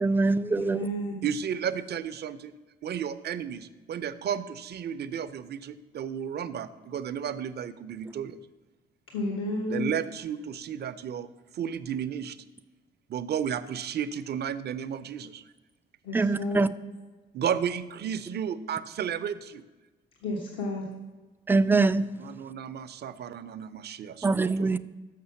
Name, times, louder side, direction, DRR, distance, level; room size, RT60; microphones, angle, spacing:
voice 1, 0.0-0.9 16.1-16.7 21.5-22.1 24.2-24.8, right 3 dB, 10° right, 0.3 m, -23 dB
voice 2, 0.5-1.2 9.1-9.9 16.0-16.7 20.2-20.9, left 1 dB, 80° left, 1.5 m, -32 dB
voice 3, 1.2-2.5 2.8-8.4 9.7-11.3 11.5-12.4 13.1-15.4 17.3-19.6 22.2-24.8, right 8 dB, 55° right, 0.6 m, -33 dB
6.6 x 6.2 x 7.1 m
cardioid pair, 90°, 20 cm